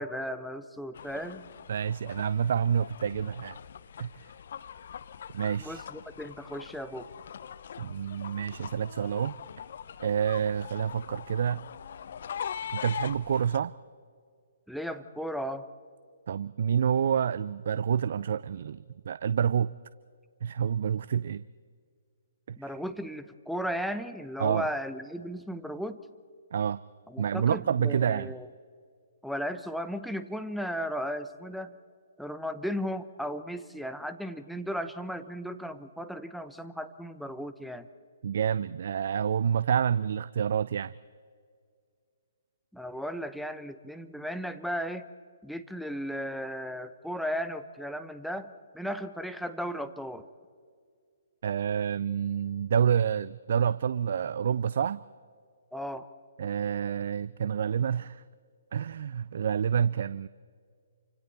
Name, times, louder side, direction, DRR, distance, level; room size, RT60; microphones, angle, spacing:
voice 1, 0.0-1.5 5.6-7.1 14.7-15.7 22.6-26.0 27.1-28.5 29.2-31.7 32.2-37.9 42.7-45.1 45.4-50.3 55.7-56.1, equal, ahead, 9 dB, 0.9 m, -35 dB
sound 1, 0.9-13.6, left 8 dB, 55° left, 0.7 m, -42 dB
voice 2, 1.7-3.6 4.0-4.1 5.3-5.8 7.8-9.4 10.0-11.6 12.7-13.7 16.3-19.7 20.4-21.4 22.5-22.7 24.4-24.7 26.5-26.8 27.2-28.3 38.2-40.9 51.4-55.0 56.4-58.2 58.7-60.3, right 8 dB, 55° right, 16 dB, 0.4 m, -28 dB
28.5 x 25.5 x 4.2 m, 2.1 s
figure-of-eight pair, 130°, 0 cm